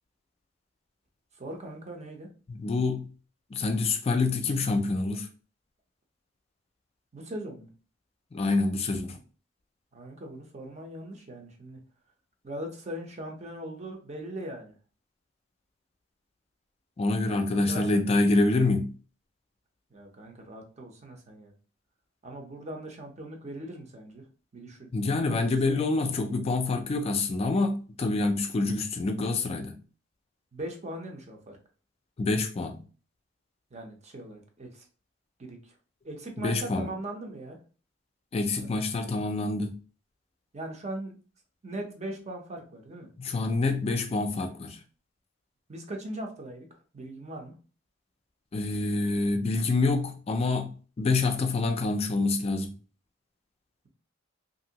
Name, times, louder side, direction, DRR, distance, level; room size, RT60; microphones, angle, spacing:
voice 1, 1.4-2.3 7.1-7.7 9.9-11.8 12.4-14.7 17.3-18.0 19.9-21.5 22.2-24.2 24.5-24.9 25.2-25.9 30.5-31.6 33.7-34.9 35.4-35.7 36.0-37.6 38.5-38.7 40.5-41.1 41.6-43.1 45.7-46.7 46.9-47.5, right 1 dB, 35° right, 0.6 m, -40 dB
voice 2, 2.5-3.1 3.5-5.3 8.3-9.2 17.0-18.9 24.9-29.8 32.2-32.8 36.4-36.9 38.3-39.8 43.2-44.8 48.5-52.7, left 3 dB, 30° left, 0.3 m, -26 dB
2.9 x 2.6 x 2.8 m
head